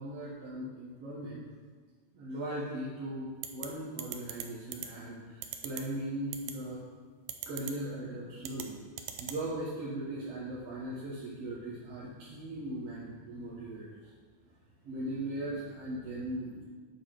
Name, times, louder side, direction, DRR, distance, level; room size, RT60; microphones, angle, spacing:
voice 1, 0.0-1.4 2.1-6.8 7.5-8.7 9.2-13.9 14.8-16.6, right 1 dB, 60° right, -8 dB, 2.4 m, -38 dB
sound 1, 3.4-3.7 4.0-4.4 4.7-4.9 5.4-5.8 6.3-6.5 7.3-7.7 8.4-8.6 9.0-9.4, right 10 dB, 90° right, 2.1 m, -38 dB
9.5 x 4.1 x 6.5 m, 1.5 s
omnidirectional pair, 3.4 m